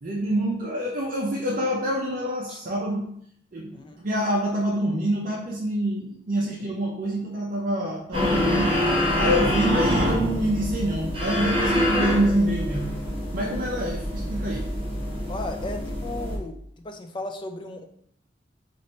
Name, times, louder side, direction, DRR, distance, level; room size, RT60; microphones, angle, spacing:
voice 1, 0.0-3.1 3.5-3.7 4.0-8.7 9.2-13.0 13.3-14.7, right 1 dB, 45° right, -2 dB, 0.6 m, -26 dB
sound 1, 8.1-16.4, left 1 dB, 30° right, 1.0 m, -25 dB
voice 2, 15.3-17.9, left 2 dB, 25° left, 5 dB, 0.4 m, -36 dB
3.2 x 2.5 x 4.1 m, 0.66 s
head